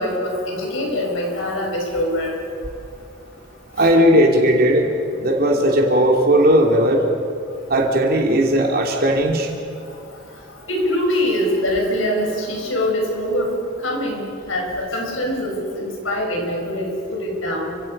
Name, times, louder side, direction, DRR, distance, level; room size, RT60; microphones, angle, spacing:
voice 1, 0.0-2.3 10.7-13.6 13.8-17.7, left 1 dB, 90° left, 0 dB, 5.6 m, -23 dB
voice 2, 3.8-4.9 5.2-7.0 7.7-9.5, equal, 50° right, 1 dB, 3.0 m, -16 dB
30.0 x 16.5 x 5.5 m, 2.4 s
head